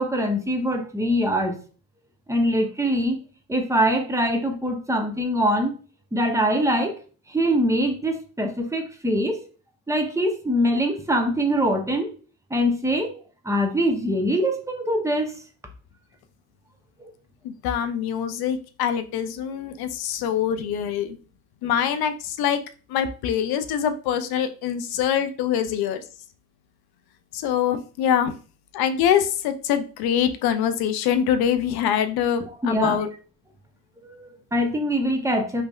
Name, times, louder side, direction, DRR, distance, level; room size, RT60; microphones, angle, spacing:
voice 1, 0.0-1.6 2.3-3.2 3.5-5.7 6.1-7.0 7.3-9.4 9.9-12.1 12.5-13.1 13.4-15.4 32.6-33.0 34.0-35.6, equal, 5° right, 4 dB, 0.7 m, -23 dB
voice 2, 17.4-21.2 21.6-22.6 22.9-26.0 27.3-28.3 28.7-33.1, left 9 dB, 60° left, 10 dB, 0.5 m, -24 dB
3.1 x 2.5 x 2.3 m, 0.37 s
hypercardioid pair, 45°, 44 cm